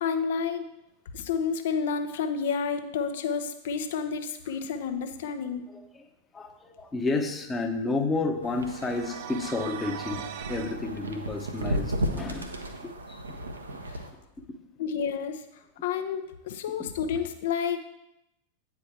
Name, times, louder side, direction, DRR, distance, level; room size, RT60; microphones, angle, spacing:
voice 1, 0.0-0.6 1.1-5.7 14.8-15.4 15.8-17.8, left 6 dB, 55° left, 8 dB, 0.7 m, -30 dB
voice 2, 5.7-6.1 6.3-12.5 12.8-13.2 16.8-16.9, left 3 dB, 15° left, 5 dB, 0.9 m, -31 dB
sound 1, 8.4-14.1, right 1 dB, 75° right, 0.8 m, -34 dB
sound 2, 8.6-10.8, right 10 dB, 50° right, 0.4 m, -40 dB
8.8 x 4.8 x 4.6 m, 0.88 s
figure-of-eight pair, 90°, 0 cm